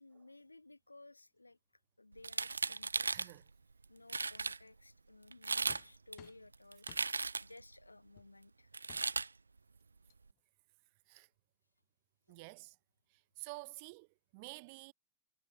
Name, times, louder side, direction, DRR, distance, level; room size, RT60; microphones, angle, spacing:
voice 1, 0.0-1.6 2.0-3.1 3.9-6.9 7.4-8.8 12.3-12.5, left 2 dB, 85° left, 3.6 m, -58 dB
sound 1, 2.2-3.3 3.8-3.9 4.1-4.6 5.3-5.8 6.1-7.6 8.7-9.3, right 4 dB, 80° right, 0.4 m, -36 dB
voice 2, 3.1-3.4 11.1-11.3 12.3-12.8 13.1-14.9, right 29 dB, 45° right, 1.8 m, -50 dB
sound 2, 5.7-6.5 6.9-7.1 8.2-8.3 8.9-9.1 9.8-9.9 10.1-10.4, left 40 dB or more, 45° left, 4.0 m, -56 dB
figure-of-eight pair, 90°, 0 cm